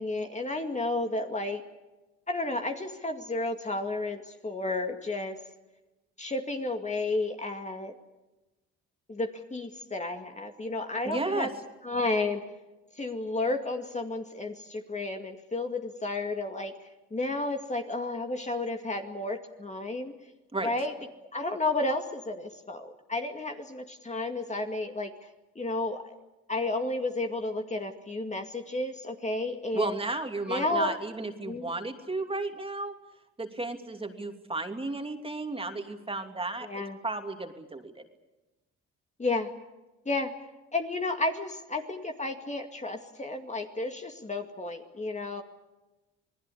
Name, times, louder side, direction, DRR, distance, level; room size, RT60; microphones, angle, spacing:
voice 1, 0.0-1.6 2.3-5.4 6.2-7.9 9.1-11.5 11.8-12.5 13.0-20.1 20.6-20.9 21.3-25.1 25.6-26.1 26.5-30.0 30.5-31.0 31.5-31.7 36.6-37.0 39.2-39.5 40.1-40.3 40.7-45.4, left 2 dB, 25° left, 4 dB, 2.2 m, -32 dB
voice 2, 11.0-11.5 20.5-20.7 29.7-32.9 33.4-37.9, right 2 dB, 20° right, 5 dB, 2.9 m, -33 dB
27.5 x 19.5 x 8.5 m, 1.1 s
cardioid pair, 90°, 30 cm